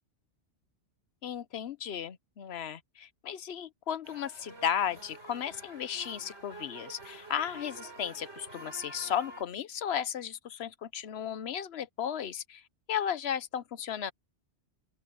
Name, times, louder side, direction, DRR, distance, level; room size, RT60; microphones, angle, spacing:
voice 1, 1.2-12.6 12.9-14.1, left 9 dB, 70° left, 1.0 m, -35 dB
sound 1, 4.0-9.4, right 2 dB, 80° right, 5.7 m, -48 dB
open air
omnidirectional pair, 1.1 m